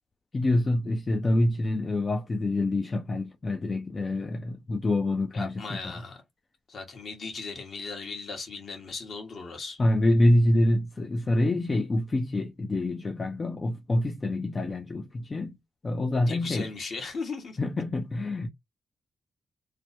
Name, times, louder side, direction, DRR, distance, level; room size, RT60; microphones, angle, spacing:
voice 1, 0.3-5.9 9.8-15.6 15.8-16.7 17.6-18.5, left 1 dB, 35° left, 0.5 m, -26 dB
voice 2, 5.3-6.2 6.7-9.8 16.3-17.6, left 4 dB, 60° left, 1.5 m, -37 dB
3.3 x 2.1 x 4.2 m
cardioid pair, 80°, 0 cm